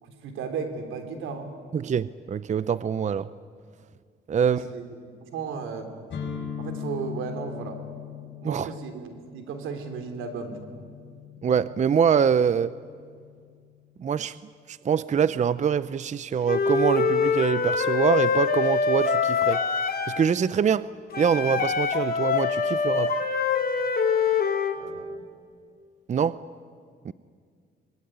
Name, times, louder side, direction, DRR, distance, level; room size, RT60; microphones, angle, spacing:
voice 1, 0.0-1.5 4.4-5.9 6.6-7.8 8.4-10.6 24.8-25.1, right 5 dB, 90° right, 6 dB, 3.3 m, -35 dB
voice 2, 1.7-3.3 4.3-4.7 8.4-8.7 11.4-12.7 14.0-14.4 14.7-19.6 20.1-20.9 21.2-23.1 26.1-26.4 27.0-27.1, right 7 dB, 35° right, 16 dB, 0.6 m, -24 dB
sound 1, 6.1-13.9, left 8 dB, 65° left, 6.5 m, -40 dB
Wind instrument woodwind instrument, 16.5-20.3 21.1-24.8, left 5 dB, 50° left, 2.8 m, -24 dB
24.0 x 21.0 x 10.0 m, 2.1 s
cardioid pair, 90°, 20 cm